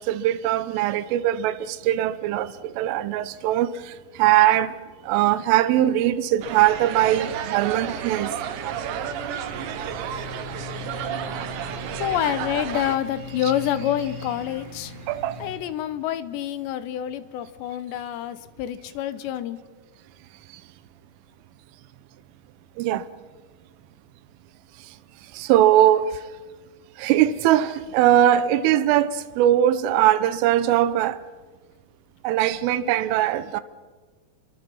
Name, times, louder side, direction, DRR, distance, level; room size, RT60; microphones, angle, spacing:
voice 1, 0.0-4.7 5.0-8.3 15.1-15.4 22.8-23.1 25.3-26.2 27.0-31.2 32.2-33.6, right 12 dB, 85° right, 3.4 m, -21 dB
sound 1, 6.4-13.0, right 9 dB, 70° right, 3.4 m, -32 dB
sound 2, 6.9-15.6, left 2 dB, 35° right, 4.6 m, -40 dB
voice 2, 12.0-14.9 15.4-19.6, left 11 dB, 75° left, 2.8 m, -27 dB
29.5 x 23.0 x 5.5 m
omnidirectional pair, 5.6 m